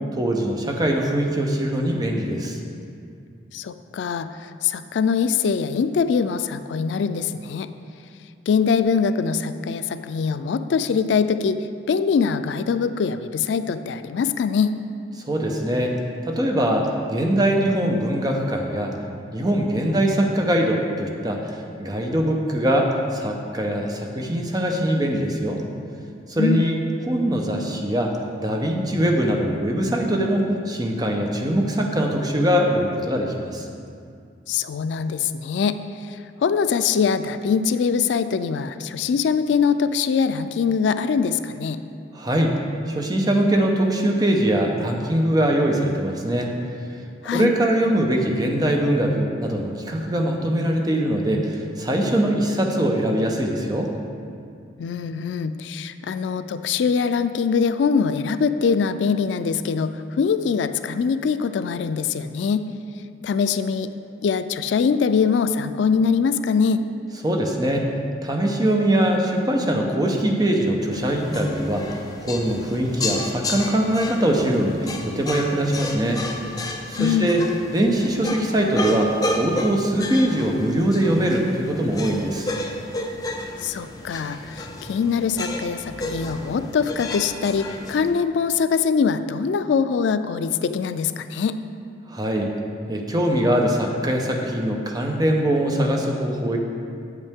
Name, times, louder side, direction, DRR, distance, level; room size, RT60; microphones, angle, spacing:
voice 1, 0.1-2.6 15.3-15.9 16.2-18.9 19.3-25.6 26.3-26.8 27.1-33.7 42.1-42.5 42.9-46.5 47.3-53.9 67.2-67.9 68.2-71.9 72.2-76.2 76.9-82.5 92.1-92.5 92.9-96.6, right 1 dB, 20° right, 1 dB, 0.8 m, -22 dB
voice 2, 3.5-4.3 4.6-7.7 8.5-11.6 11.9-14.7 26.4-26.6 34.5-35.8 36.4-41.8 47.2-47.5 54.8-62.7 63.2-63.9 64.2-66.8 77.0-77.3 83.6-91.6, left 6 dB, 85° left, 11 dB, 0.3 m, -23 dB
sound 1, 70.9-88.1, left 2 dB, 20° left, 0.6 m, -32 dB
8.3 x 7.8 x 3.6 m, 2.3 s
head